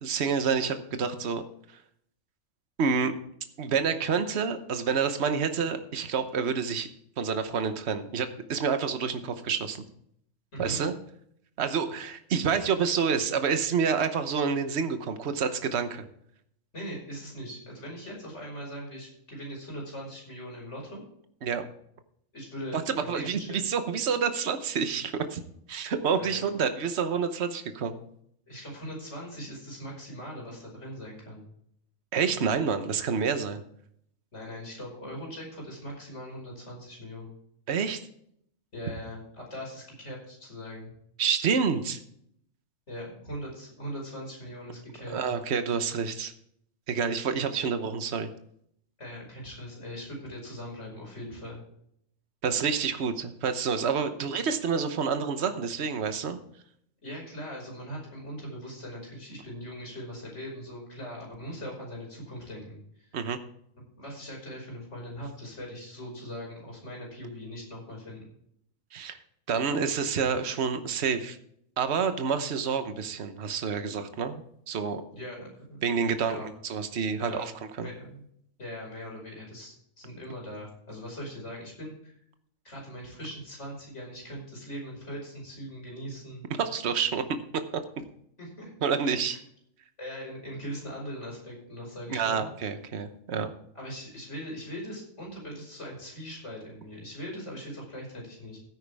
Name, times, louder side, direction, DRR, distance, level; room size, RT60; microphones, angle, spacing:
voice 1, 0.0-1.4 2.8-3.1 3.6-6.9 7.2-9.8 10.6-10.9 11.6-16.1 21.4-21.7 22.7-25.4 25.7-28.0 32.1-33.6 37.7-38.0 41.2-42.0 45.1-46.3 46.9-48.3 52.4-56.4 63.1-63.4 68.9-69.2 69.5-71.4 71.8-75.0 75.8-77.5 77.8-77.9 86.6-87.2 87.7-87.8 88.8-89.4 92.1-93.5, right 6 dB, 55° right, 9 dB, 1.2 m, -28 dB
voice 2, 10.5-10.8 16.7-21.0 22.3-23.6 26.2-26.4 28.5-31.4 34.3-37.3 38.7-40.9 42.9-45.2 49.0-51.6 57.0-63.2 64.0-68.2 75.1-75.8 76.2-76.5 77.2-77.5 77.8-78.2 78.6-82.2 82.6-86.4 88.4-88.7 90.0-92.5 93.7-98.6, equal, 60° left, -1 dB, 5.8 m, -40 dB
16.0 x 9.2 x 3.5 m, 0.69 s
omnidirectional pair, 1.4 m